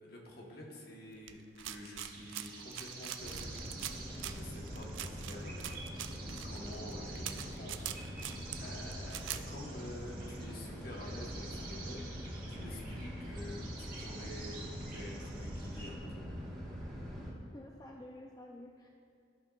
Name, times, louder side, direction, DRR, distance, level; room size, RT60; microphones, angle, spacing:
voice 1, 0.0-14.6 14.9-16.3, left 1 dB, 50° left, -2 dB, 1.2 m, -49 dB
sound 1, 1.3-9.4, right 12 dB, 80° right, 0.4 m, -44 dB
sound 2, 2.0-15.9, right 3 dB, 50° right, 1.4 m, -50 dB
sound 3, 3.2-17.3, equal, ahead, 1.4 m, -43 dB
voice 2, 17.5-18.9, left 1 dB, 20° left, 0 dB, 0.3 m, -50 dB
13.5 x 5.3 x 2.4 m, 2.5 s
head